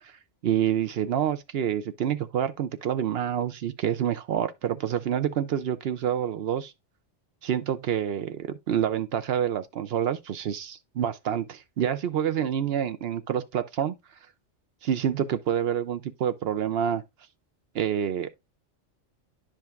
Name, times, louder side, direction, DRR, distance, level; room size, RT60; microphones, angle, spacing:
voice 1, 0.4-6.7 7.4-13.9 14.8-17.0 17.7-18.3, right 9 dB, 65° right, 0.8 m, -27 dB
10.5 x 5.1 x 2.4 m
omnidirectional pair, 1.2 m